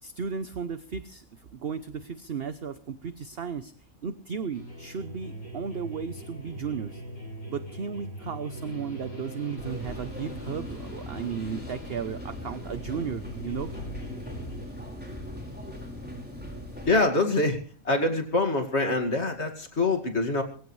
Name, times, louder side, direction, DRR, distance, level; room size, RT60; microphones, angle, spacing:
voice 1, 0.0-3.7 4.0-7.0 7.5-13.7, right 6 dB, 50° right, 11 dB, 1.0 m, -35 dB
sound 1, 4.5-14.7, right 1 dB, 90° left, 7.2 m, -42 dB
sound 2, 9.6-17.0, equal, 5° right, 4.9 m, -39 dB
voice 2, 16.8-17.6 17.8-20.4, left 2 dB, 50° left, 4 dB, 2.6 m, -25 dB
23.0 x 15.5 x 3.3 m, 0.41 s
omnidirectional pair, 1.5 m